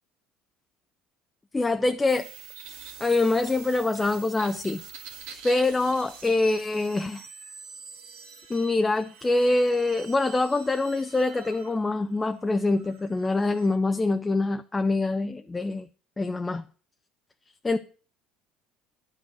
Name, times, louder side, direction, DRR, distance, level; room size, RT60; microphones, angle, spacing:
voice 1, 1.5-2.3 3.0-4.8 5.4-7.3 8.5-15.9 16.2-16.6 17.6-17.8, left 2 dB, 15° left, 0.5 m, -25 dB
sound 1, 2.1-13.7, right 6 dB, 85° right, 1.8 m, -45 dB
9.7 x 5.2 x 7.6 m
supercardioid pair, 80°, 0 cm